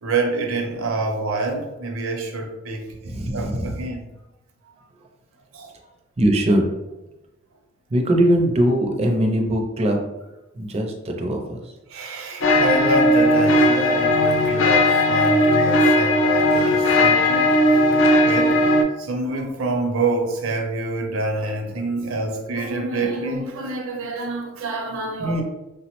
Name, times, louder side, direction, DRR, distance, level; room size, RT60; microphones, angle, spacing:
voice 1, 0.0-2.9 3.3-4.1 5.5-5.7 11.9-17.5 18.2-18.6 19.0-25.4, right 2 dB, 80° right, 2 dB, 0.6 m, -26 dB
voice 2, 3.0-3.8 6.2-6.6 7.9-10.0 10.6-11.6 25.2-25.4, right 1 dB, 30° right, 2 dB, 0.4 m, -21 dB
sound 1, 12.4-18.8, left 1 dB, 65° left, 0.4 m, -17 dB
3.3 x 2.0 x 2.9 m, 0.97 s
head